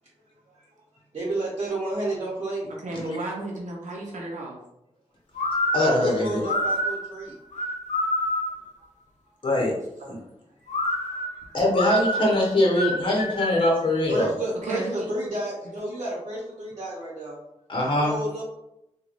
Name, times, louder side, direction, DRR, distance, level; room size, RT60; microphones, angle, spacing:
voice 1, 0.9-2.7 5.7-7.4 8.8-8.9 9.2-9.3 10.6-10.7 11.1-11.4 13.8-17.4 18.0-18.4, right 1 dB, 55° right, -7 dB, 0.8 m, -31 dB
voice 2, 2.8-4.6 14.6-15.1, right 2 dB, 85° right, -3 dB, 0.6 m, -33 dB
sound 1, 5.4-8.7 10.7-13.8, left 1 dB, 75° left, 0.5 m, -27 dB
voice 3, 5.7-6.4 9.4-9.7 10.1-10.2 11.5-14.3 17.7-18.2, left 1 dB, 40° left, -3 dB, 0.9 m, -22 dB
3.0 x 2.2 x 2.5 m, 0.85 s
cardioid pair, 60°, 12 cm